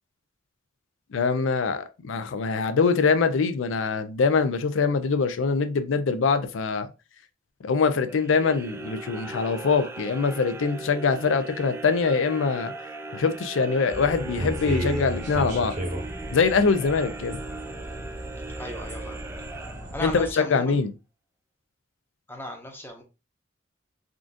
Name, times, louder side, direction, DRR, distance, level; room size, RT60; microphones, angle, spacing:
voice 1, 1.1-6.9 7.6-12.7 13.1-15.7 16.3-17.4 20.0-20.9, left 5 dB, 80° left, 0.4 m, -23 dB
sound 1, 8.1-20.3, right 3 dB, 15° right, 0.3 m, -39 dB
sound 2, 13.9-20.3, right 1 dB, 40° right, 0.8 m, -34 dB
voice 2, 18.6-19.3 19.9-20.8 22.3-23.0, left 1 dB, 10° left, 0.7 m, -36 dB
3.7 x 2.5 x 2.4 m
head